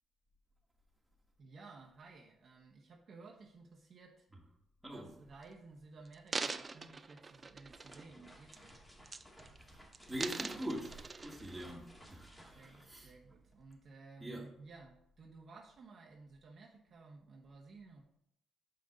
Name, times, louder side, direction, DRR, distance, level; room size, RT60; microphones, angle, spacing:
voice 1, 1.4-4.3 4.9-8.8 12.5-18.0, right 3 dB, 55° right, 0 dB, 0.9 m, -56 dB
sound 1, 5.3-5.4 6.0-8.2 8.5-8.8 9.1-9.6 9.9-11.6 12.2-12.3, right 4 dB, 30° right, 0.4 m, -43 dB
sound 2, 7.4-13.7, right 1 dB, 15° left, 2.0 m, -58 dB
voice 2, 10.1-13.1 14.2-14.5, right 1 dB, 10° right, -1 dB, 1.8 m, -43 dB
6.6 x 5.4 x 3.8 m, 0.75 s
cardioid pair, 90°, 0 cm